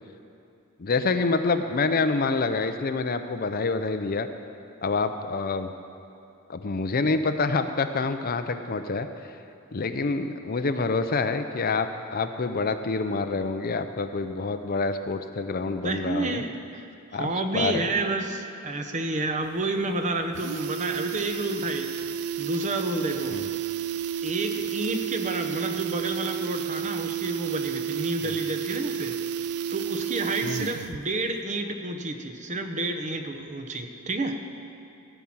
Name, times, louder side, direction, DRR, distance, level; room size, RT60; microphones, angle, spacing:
voice 1, 0.8-4.3 4.8-5.7 6.5-9.1 9.7-16.4 17.1-17.9 23.3-23.5 28.2-28.4 30.4-30.7, left 3 dB, 40° left, 8 dB, 0.5 m, -27 dB
voice 2, 15.8-16.9 17.1-21.9 22.4-23.4 24.2-29.1 29.7-34.4, right 2 dB, 35° right, 6 dB, 0.9 m, -30 dB
sound 1, 19.4-19.5 19.8-19.9 20.2-31.0 31.3-31.4, right 9 dB, 90° right, 0.4 m, -31 dB
16.0 x 6.0 x 8.7 m, 2.7 s
head